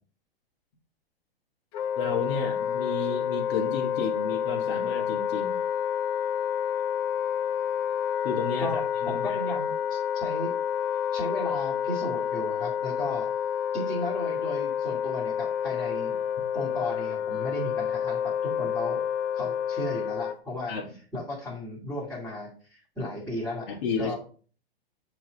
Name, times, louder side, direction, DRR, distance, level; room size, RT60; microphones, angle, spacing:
Wind instrument woodwind instrument, 1.7-20.4, left 8 dB, 30° left, 0.5 m, -29 dB
voice 1, 2.0-5.6 8.2-9.4 20.7-20.9 23.7-24.2, left 5 dB, 60° left, 0 dB, 1.5 m, -32 dB
voice 2, 8.6-10.5 11.1-13.3 13.7-16.2 16.5-19.0 19.3-20.7 21.1-23.7 24.0-24.2, left 1 dB, 5° left, -7 dB, 2.4 m, -35 dB
7.7 x 3.1 x 3.9 m, 0.42 s
hypercardioid pair, 130°, 30 cm